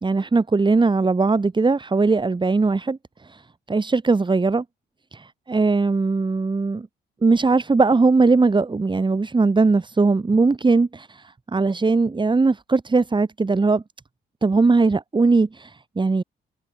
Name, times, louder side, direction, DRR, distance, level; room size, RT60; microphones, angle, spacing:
voice 1, 0.0-3.0 3.2-3.4 3.7-4.6 5.1-6.9 7.2-13.8 14.4-16.2, right 3 dB, 25° right, 2.7 m, -19 dB
cardioid pair, 90°, 20 cm